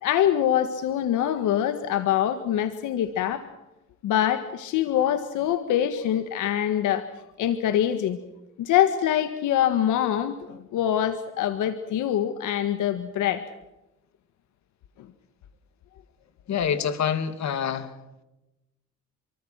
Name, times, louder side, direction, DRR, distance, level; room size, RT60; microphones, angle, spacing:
voice 1, 0.0-3.4 4.0-7.1 7.4-8.2 8.6-13.4, left 10 dB, 90° left, 9 dB, 1.8 m, -24 dB
voice 2, 16.5-17.9, left 8 dB, 65° left, 10 dB, 2.8 m, -26 dB
29.5 x 24.5 x 5.9 m, 0.97 s
cardioid pair, 90°, 30 cm